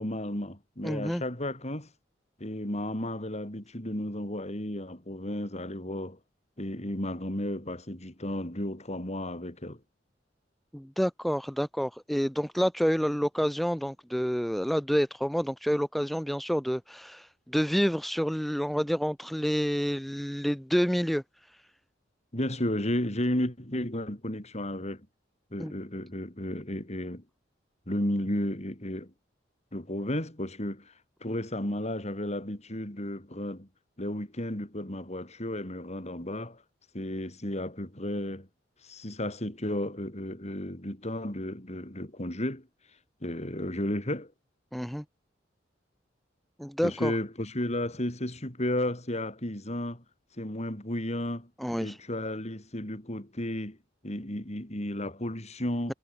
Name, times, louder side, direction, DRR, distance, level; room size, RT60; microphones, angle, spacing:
voice 1, 0.0-1.9 2.4-6.2 6.6-9.8 22.3-25.1 25.5-27.2 27.9-29.1 29.7-30.9 31.2-33.7 34.0-36.6 36.9-38.5 38.8-42.7 43.2-44.3 46.8-50.0 50.4-51.5 51.8-53.8 54.0-55.9, left 1 dB, 35° left, 4.8 m, -33 dB
voice 2, 0.8-1.2 10.7-21.6 25.6-25.8 44.7-45.0 46.6-47.1 51.6-52.0, equal, ahead, 0.4 m, -28 dB
head